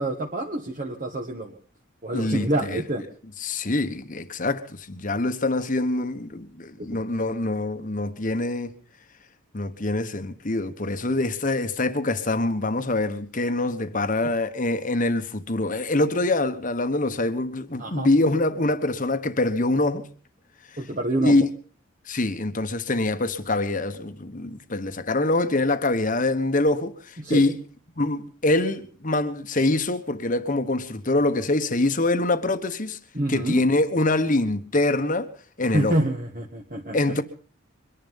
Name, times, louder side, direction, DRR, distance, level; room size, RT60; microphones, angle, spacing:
voice 1, 0.0-1.6 2.0-3.0 6.8-6.9 17.8-18.1 20.8-21.3 27.2-27.4 33.2-33.6 35.7-37.0, right 1 dB, 40° right, 1.7 m, -27 dB
voice 2, 2.1-2.8 3.4-8.7 9.5-20.1 21.2-21.5 22.1-27.6 28.0-33.0 33.3-35.3 35.6-35.9 36.9-37.2, left 2 dB, 40° left, 1.3 m, -24 dB
23.5 x 11.0 x 5.6 m
head